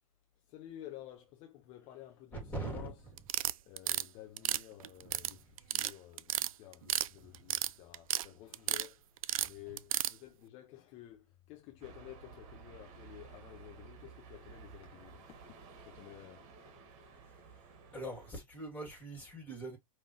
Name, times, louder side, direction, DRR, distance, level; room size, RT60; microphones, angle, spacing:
voice 1, 0.5-2.9 3.7-9.1 9.4-15.4 15.8-16.8 17.4-17.5, left 13 dB, 35° left, 0.7 m, -52 dB
voice 2, 2.3-3.2 5.0-5.5 7.2-7.5 9.4-9.6 17.9-19.8, right 2 dB, 10° left, 2.6 m, -43 dB
sound 1, 3.2-4.0 4.4-5.3 5.6-5.9 6.2-7.1 7.3-8.3 8.5-8.9 9.2-10.1, right 12 dB, 70° right, 0.4 m, -32 dB
sound 2, 11.8-18.3, right 6 dB, 40° right, 1.5 m, -54 dB
5.2 x 3.0 x 3.0 m
hypercardioid pair, 115°, 18 cm